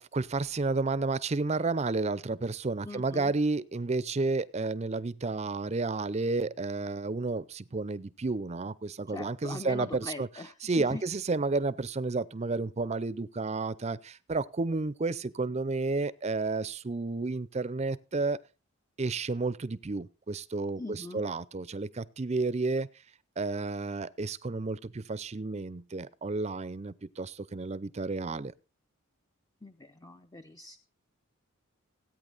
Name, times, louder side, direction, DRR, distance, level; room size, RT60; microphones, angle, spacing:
voice 1, 0.0-10.3 10.6-18.4 19.0-22.9 23.4-28.5, right 3 dB, 30° right, 0.5 m, -31 dB
voice 2, 2.8-3.3 9.1-11.0 20.8-21.2 29.6-30.8, left 2 dB, 15° left, 0.6 m, -41 dB
17.0 x 9.0 x 4.0 m
head